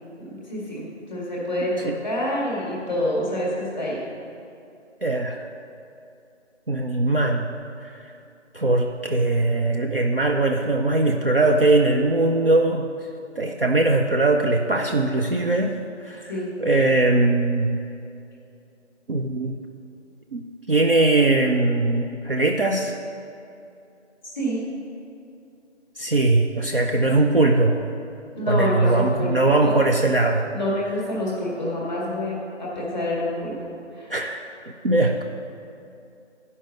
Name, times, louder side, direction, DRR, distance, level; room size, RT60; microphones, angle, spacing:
voice 1, 0.3-4.0 16.3-16.6 24.2-24.6 28.3-29.3 29.6-29.7 30.5-33.5 33.9-34.1, left 1 dB, 5° right, -6 dB, 1.4 m, -27 dB
voice 2, 5.0-5.5 6.7-7.5 7.8-8.0 8.5-12.9 13.4-16.3 16.6-17.8 19.1-19.6 20.3-20.4 20.7-22.9 26.0-27.9 28.5-30.5 34.1-34.4 34.8-35.2, right 2 dB, 50° right, 2 dB, 0.5 m, -20 dB
10.5 x 5.4 x 6.5 m, 2.7 s
figure-of-eight pair, 175°, 36 cm